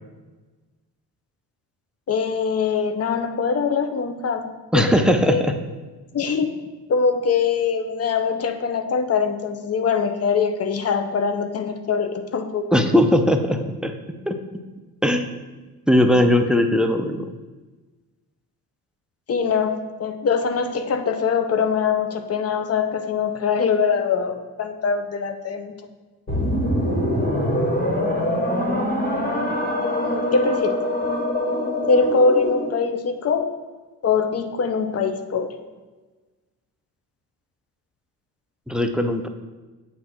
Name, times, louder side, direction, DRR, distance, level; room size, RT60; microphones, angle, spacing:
voice 1, 2.1-5.4 6.1-6.6 6.9-12.7 19.3-25.7 29.8-30.8 31.9-33.5 34.0-35.6, left 5 dB, 40° left, 7 dB, 0.6 m, -23 dB
voice 2, 4.7-5.5 12.7-13.9 14.3-14.4 15.0-15.3 15.9-17.2 38.7-39.3, left 1 dB, ahead, 5 dB, 0.4 m, -19 dB
sound 1, 26.3-32.8, left 1 dB, 25° left, 1.7 m, -23 dB
7.6 x 2.8 x 5.7 m, 1.3 s
cardioid pair, 100°, 39 cm